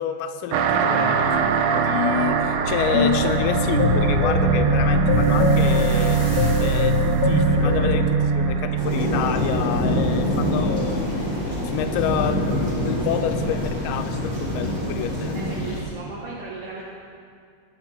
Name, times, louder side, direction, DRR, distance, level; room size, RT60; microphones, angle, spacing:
voice 1, 0.0-6.2 6.6-15.4, left 8 dB, 80° left, 6 dB, 2.9 m, -28 dB
sound 1, 0.5-11.5, right 5 dB, 80° right, 3.2 m, -22 dB
sound 2, 2.9-8.1, left 5 dB, 55° left, 1.8 m, -24 dB
sound 3, 8.8-15.8, equal, 5° right, 4.0 m, -25 dB
voice 2, 15.3-16.8, right 4 dB, 65° right, -5 dB, 3.2 m, -36 dB
24.0 x 9.0 x 4.4 m, 2.2 s
omnidirectional pair, 5.3 m